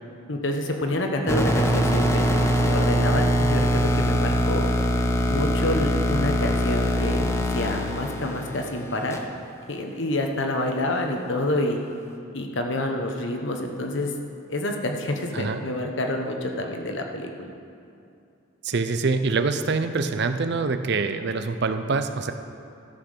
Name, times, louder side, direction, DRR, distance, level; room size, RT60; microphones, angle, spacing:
voice 1, 0.3-4.6 5.3-9.2 9.7-11.8 12.3-14.1 14.5-17.5, left 1 dB, 65° left, 3 dB, 1.1 m, -28 dB
sound 1, 1.3-9.2, equal, 15° left, 0.7 m, -23 dB
voice 2, 18.6-22.3, right 4 dB, 55° right, 9 dB, 0.6 m, -25 dB
13.0 x 6.0 x 6.6 m, 2.6 s
head